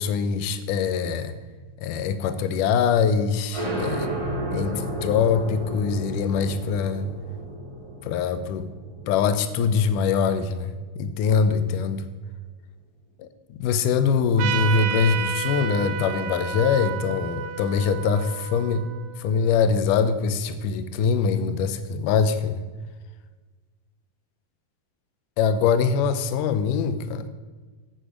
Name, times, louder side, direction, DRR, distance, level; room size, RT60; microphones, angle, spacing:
voice 1, 0.0-1.4 1.8-4.1 4.5-7.1 8.0-8.7 9.1-12.0 13.2-18.9 19.2-22.6 25.4-27.2, left 6 dB, 75° left, 11 dB, 2.2 m, -23 dB
s betrayed oven, 3.5-10.8, right 1 dB, 10° right, 1.9 m, -33 dB
Trumpet, 14.4-19.5, right 8 dB, 75° right, 1.8 m, -31 dB
10.0 x 9.0 x 5.1 m, 1.3 s
omnidirectional pair, 4.1 m